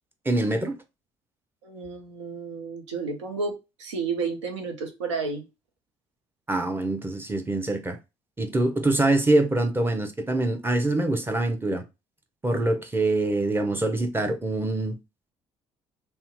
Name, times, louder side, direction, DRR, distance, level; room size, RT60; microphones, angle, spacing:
voice 1, 0.2-0.8 6.5-8.0 8.4-11.8 12.4-15.0, right 2 dB, 15° right, 0.7 m, -24 dB
voice 2, 1.6-5.4, right 4 dB, 85° right, 0.6 m, -31 dB
2.8 x 2.1 x 3.4 m
hypercardioid pair, 50°, 15 cm